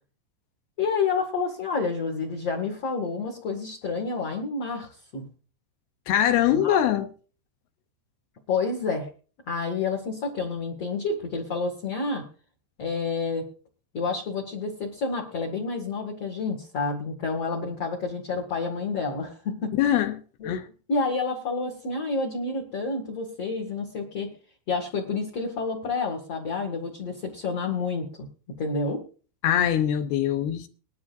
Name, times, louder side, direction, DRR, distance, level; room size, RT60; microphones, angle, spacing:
voice 1, 0.8-5.3 6.5-6.8 8.5-9.1 9.5-12.2 12.8-13.5 13.9-19.7 20.4-20.5 20.9-24.3 24.7-28.3 28.6-29.0, left 4 dB, 45° left, 2.3 m, -29 dB
voice 2, 6.1-7.1 19.8-20.7 29.4-30.7, left 10 dB, 75° left, 2.5 m, -23 dB
21.0 x 12.0 x 2.6 m
omnidirectional pair, 5.2 m